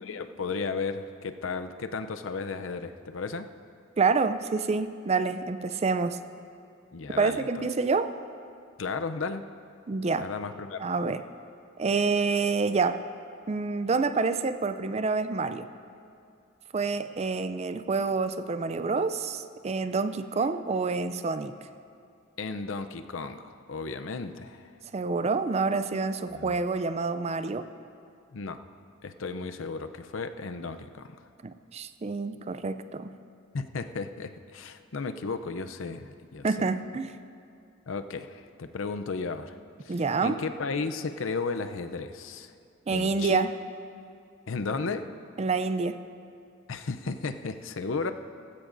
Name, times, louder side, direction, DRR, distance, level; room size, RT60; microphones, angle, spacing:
voice 1, 0.0-3.5 6.9-7.5 8.8-9.4 10.2-10.8 22.4-24.7 26.3-26.6 28.3-28.6 29.0-31.2 33.5-36.5 37.9-42.5 42.9-43.5 44.5-45.1 46.7-48.1, left 4 dB, 75° left, 9 dB, 0.6 m, -34 dB
voice 2, 4.0-6.2 7.2-8.1 9.9-10.3 10.8-11.2 11.8-13.0 13.5-15.7 16.7-21.5 24.9-27.6 31.4-33.1 36.4-37.1 39.9-40.4 42.9-43.5 45.4-46.0, right 4 dB, 30° right, 11 dB, 0.4 m, -27 dB
18.5 x 15.5 x 2.6 m, 2.5 s
head